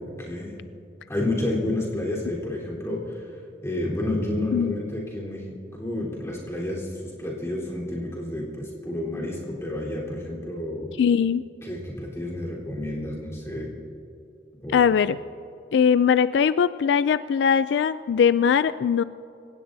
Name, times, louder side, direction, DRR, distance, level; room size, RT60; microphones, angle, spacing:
voice 1, 0.2-0.5 1.1-10.9 11.6-13.7 14.6-14.9, left 1 dB, 15° left, -4 dB, 3.8 m, -30 dB
voice 2, 11.0-11.4 14.7-15.2 15.7-19.0, left 7 dB, 70° left, 15 dB, 0.3 m, -20 dB
27.0 x 16.5 x 2.7 m, 2.7 s
head